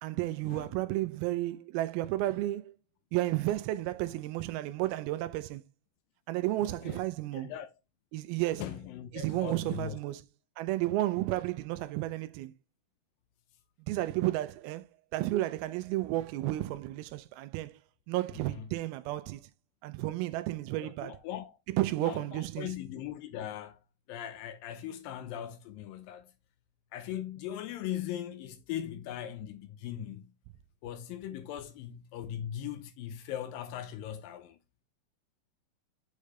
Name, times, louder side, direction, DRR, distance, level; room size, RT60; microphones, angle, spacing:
voice 1, 0.0-2.8 3.1-5.6 6.3-7.5 8.1-8.6 9.1-10.2 10.6-12.5 13.8-14.9 15.1-17.8 18.1-19.4 19.8-21.2 21.7-22.7, right 16 dB, 85° right, 2.4 m, -32 dB
voice 2, 6.6-7.0 7.3-7.7 8.6-10.0 18.5-18.7 20.7-21.6 22.0-23.8 24.1-26.3 26.9-30.3 30.8-34.6, left 11 dB, 80° left, 2.2 m, -39 dB
6.5 x 5.0 x 3.2 m
omnidirectional pair, 4.4 m